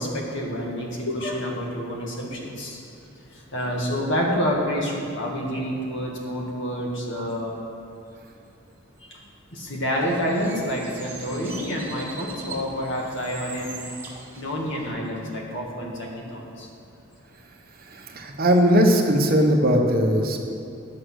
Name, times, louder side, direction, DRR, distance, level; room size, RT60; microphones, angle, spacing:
voice 1, 0.0-2.8 3.3-7.5 9.1-9.2 9.5-13.8 14.4-16.7, equal, 65° left, -2 dB, 2.1 m, -28 dB
Bird, 9.9-14.9, right 3 dB, 10° right, 1.9 m, -41 dB
voice 2, 17.8-20.5, equal, 50° right, 2 dB, 1.2 m, -19 dB
10.5 x 8.0 x 6.3 m, 2.6 s
head